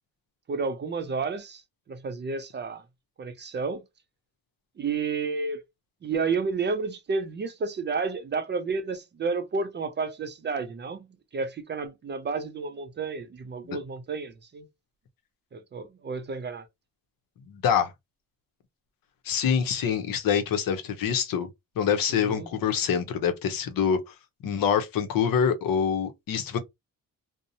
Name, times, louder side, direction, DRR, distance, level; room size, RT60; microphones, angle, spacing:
voice 1, 0.5-1.6 1.9-2.8 3.2-3.8 4.8-5.6 6.0-11.1 11.3-14.7 15.5-16.7 22.1-22.5, right 4 dB, 30° right, 0.4 m, -31 dB
voice 2, 17.5-17.9 19.3-21.5 21.8-24.0 24.4-26.6, left 7 dB, 70° left, 0.7 m, -25 dB
2.6 x 2.0 x 2.6 m
cardioid pair, 120°, 35 cm